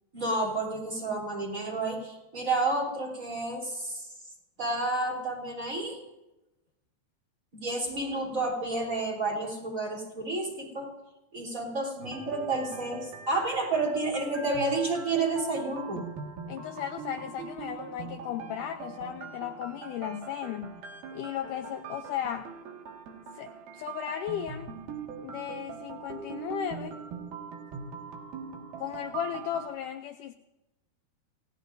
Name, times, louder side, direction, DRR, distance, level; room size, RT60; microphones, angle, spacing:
voice 1, 0.1-4.1 4.6-6.0 7.5-10.9 11.3-16.0, right 2 dB, 20° right, -2 dB, 3.6 m, -30 dB
sound 1, 12.0-29.7, right 6 dB, 80° right, 3.7 m, -41 dB
voice 2, 16.5-20.8 21.1-22.5 23.3-24.7 25.2-27.0 28.8-30.3, left 10 dB, 80° left, 6 dB, 1.8 m, -35 dB
28.5 x 17.5 x 2.6 m, 0.98 s
omnidirectional pair, 4.3 m